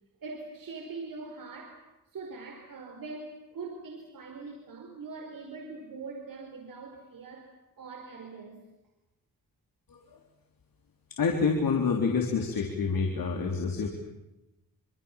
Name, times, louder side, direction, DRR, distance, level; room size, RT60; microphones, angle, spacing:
voice 1, 0.2-1.9 2.1-7.5 7.8-8.6, right 4 dB, 75° right, 2 dB, 4.8 m, -42 dB
voice 2, 11.2-13.9, left 5 dB, 85° left, 2 dB, 3.7 m, -27 dB
26.5 x 26.5 x 7.4 m, 0.94 s
wide cardioid pair, 140°, 34 cm